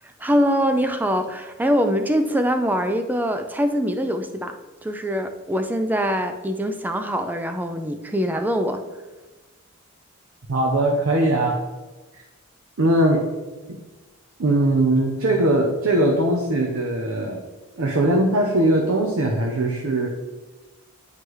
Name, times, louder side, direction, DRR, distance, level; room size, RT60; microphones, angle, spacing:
voice 1, 0.2-4.6 4.8-8.8, equal, 10° right, 7 dB, 0.3 m, -23 dB
voice 2, 10.5-11.6 12.1-12.2 12.8-13.2 13.7-13.8 14.4-17.4 17.8-20.1, right 1 dB, 65° right, 1 dB, 0.6 m, -20 dB
9.4 x 3.3 x 3.1 m, 1.2 s
head